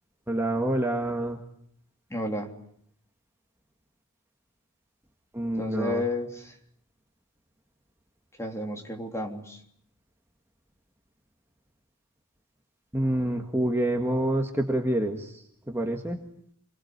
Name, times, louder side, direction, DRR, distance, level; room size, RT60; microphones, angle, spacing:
voice 1, 0.3-1.4 5.3-6.0 12.9-15.4 15.7-16.2, right 1 dB, 10° right, 2 dB, 1.8 m, -27 dB
voice 2, 2.1-2.5 5.6-6.5 8.4-9.6, left 1 dB, 10° left, 3 dB, 3.4 m, -31 dB
28.0 x 21.5 x 9.6 m, 0.67 s
head